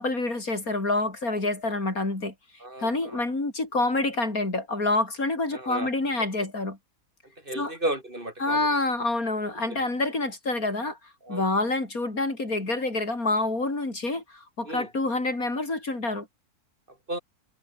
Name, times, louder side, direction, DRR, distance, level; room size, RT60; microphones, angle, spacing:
voice 1, 0.0-2.3 2.8-6.8 7.6-7.7 8.4-11.0 11.3-16.3, left 2 dB, 60° left, 5.7 m, -27 dB
voice 2, 2.6-3.3 5.5-5.9 7.4-8.7 9.7-9.9 11.2-11.5 14.6-14.9 16.9-17.2, right 1 dB, 30° right, 7.2 m, -34 dB
omnidirectional pair, 1.7 m